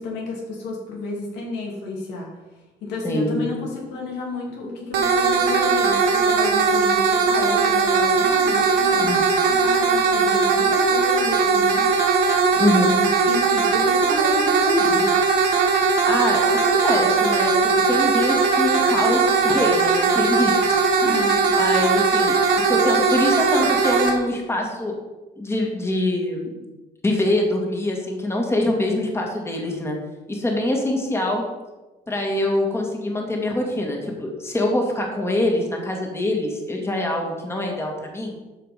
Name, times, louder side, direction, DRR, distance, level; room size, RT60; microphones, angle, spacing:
voice 1, 0.0-2.3 2.8-9.0 9.4-12.2 12.5-15.2 21.0-21.4, left 3 dB, 90° left, -1 dB, 2.8 m, -31 dB
voice 2, 3.0-3.5 8.9-9.3 12.6-13.0 16.1-24.9 25.4-26.5 27.0-30.0 30.3-31.4 32.1-38.3, left 1 dB, 15° left, 1 dB, 2.0 m, -24 dB
sound 1, 4.9-24.1, right 5 dB, 85° right, 1.9 m, -19 dB
12.5 x 5.0 x 5.1 m, 1.1 s
cardioid pair, 110°, 17 cm